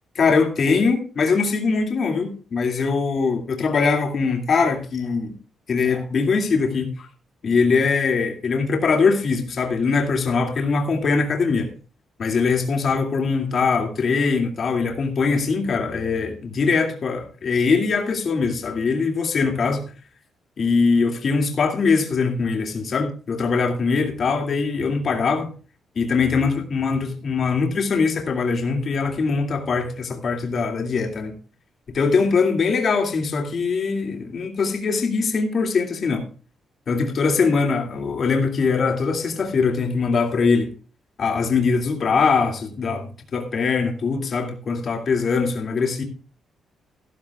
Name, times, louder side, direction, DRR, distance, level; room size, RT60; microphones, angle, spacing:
voice 1, 0.2-5.3 5.7-7.1 7.4-11.7 12.2-19.8 20.6-25.5 26.0-31.3 31.9-36.2 36.9-40.7 41.2-46.0, left 4 dB, 45° left, 3 dB, 2.3 m, -22 dB
14.5 x 13.0 x 2.3 m, 0.36 s
cardioid pair, 145°, 0 cm